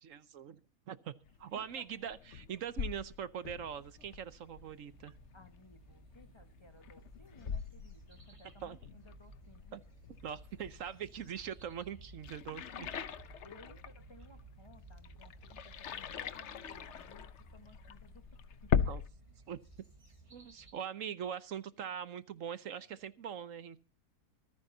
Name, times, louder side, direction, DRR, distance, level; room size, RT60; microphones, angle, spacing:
voice 1, 0.0-0.6 0.9-1.1 1.4-5.1 8.6-8.8 9.7-9.8 10.2-12.9 18.8-19.0 19.5-19.6 20.3-23.8, right 8 dB, 60° right, 1.1 m, -42 dB
sound 1, 1.2-19.1, left 8 dB, 55° left, 0.9 m, -41 dB
voice 2, 1.5-2.1 5.3-9.8 13.4-18.9 19.3-19.4, left 2 dB, 20° left, 1.3 m, -60 dB
sound 2, 3.7-20.7, right 2 dB, 20° right, 6.0 m, -57 dB
25.5 x 10.5 x 2.7 m
omnidirectional pair, 1.7 m